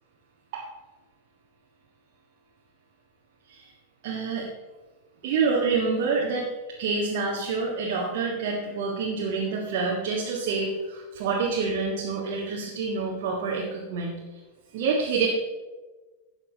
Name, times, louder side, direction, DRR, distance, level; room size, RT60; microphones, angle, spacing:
voice 1, 4.0-4.5 5.2-6.5 6.8-14.1 14.7-15.3, right 4 dB, 50° right, -2 dB, 1.7 m, -27 dB
13.0 x 8.3 x 4.0 m, 1.2 s
figure-of-eight pair, 90°, 0 cm